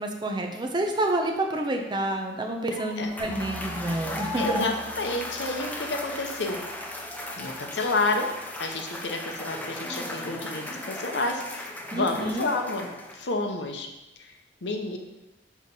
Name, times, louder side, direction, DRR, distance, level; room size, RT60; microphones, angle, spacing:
voice 1, 0.0-4.7 11.9-12.5, right 1 dB, 25° right, 2 dB, 0.7 m, -28 dB
voice 2, 2.8-3.1 4.4-6.6 7.3-8.3 8.6-12.9 13.1-13.9 14.6-15.0, left 2 dB, 75° left, 4 dB, 0.8 m, -30 dB
Cheering / Applause / Crowd, 2.9-13.4, left 1 dB, 10° left, 0.6 m, -36 dB
sound 1, 3.2-8.3, right 2 dB, 45° left, 1.8 m, -46 dB
4.9 x 4.0 x 5.4 m, 0.98 s
head